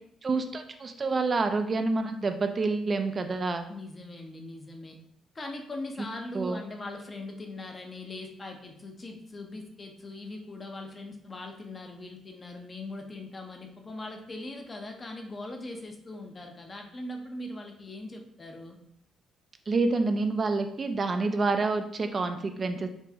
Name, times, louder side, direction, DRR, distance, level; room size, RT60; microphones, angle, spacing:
voice 1, 0.2-3.7 6.3-6.6 19.7-22.9, right 3 dB, 35° right, 7 dB, 0.3 m, -28 dB
voice 2, 3.7-5.0 5.3-18.8, left 2 dB, 30° left, 4 dB, 0.6 m, -40 dB
4.4 x 2.0 x 2.7 m, 0.72 s
cardioid pair, 90°, 0 cm